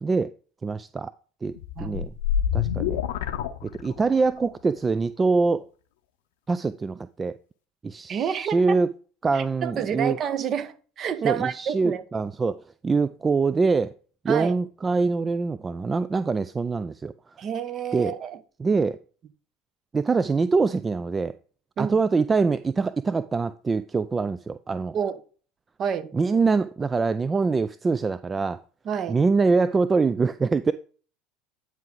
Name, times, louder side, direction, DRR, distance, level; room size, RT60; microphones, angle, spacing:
voice 1, 0.0-0.3 0.6-1.1 1.4-1.5 1.8-2.1 2.5-3.0 3.6-5.7 6.5-7.4 7.8-8.9 9.2-10.2 11.2-13.9 14.2-17.3 17.9-18.1 18.6-19.0 19.9-21.4 21.8-25.0 26.1-28.6 29.1-30.7, right 4 dB, 20° right, 0.3 m, -24 dB
sound 1, 1.6-4.3, left 9 dB, 75° left, 0.6 m, -27 dB
voice 2, 1.8-2.1 8.1-8.8 9.3-12.0 14.3-14.5 17.4-18.4 21.8-21.9 24.9-25.2 25.8-26.1 28.8-29.2, right 8 dB, 40° right, 0.8 m, -29 dB
9.3 x 4.7 x 3.9 m
hypercardioid pair, 75°, 0 cm